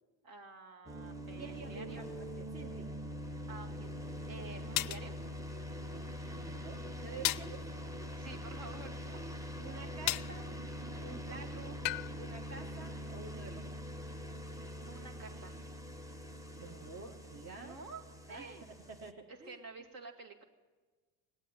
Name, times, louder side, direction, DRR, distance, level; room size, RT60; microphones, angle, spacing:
voice 1, 0.2-2.0 3.5-3.9 4.3-5.1 8.2-9.0 14.9-15.6 17.6-18.0 18.3-18.6 19.3-20.4, right 4 dB, 50° right, 1 dB, 2.1 m, -49 dB
sound 1, 0.9-19.1, equal, 10° right, 1.0 m, -44 dB
voice 2, 1.3-2.9 6.3-7.6 9.6-10.5 11.0-11.8 12.2-13.7 16.6-17.8 18.3-19.6, right 4 dB, 35° right, 2 dB, 1.4 m, -49 dB
sound 2, 3.6-3.7 4.8-5.1 7.2-7.5 10.1-10.4 11.8-12.1, left 21 dB, 75° left, 0.5 m, -33 dB
18.0 x 8.2 x 9.6 m, 1.4 s
supercardioid pair, 75°, 42 cm